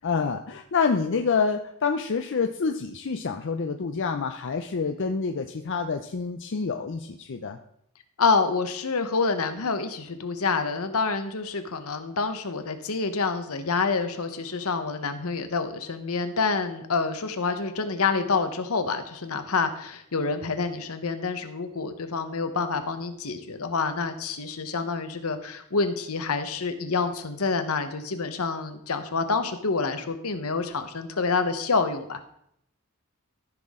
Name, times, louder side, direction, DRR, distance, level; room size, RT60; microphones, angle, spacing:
voice 1, 0.0-7.6, left 5 dB, 55° left, 6 dB, 0.5 m, -27 dB
voice 2, 8.2-32.2, left 4 dB, 75° left, 8 dB, 1.0 m, -27 dB
14.0 x 6.0 x 3.7 m, 0.74 s
head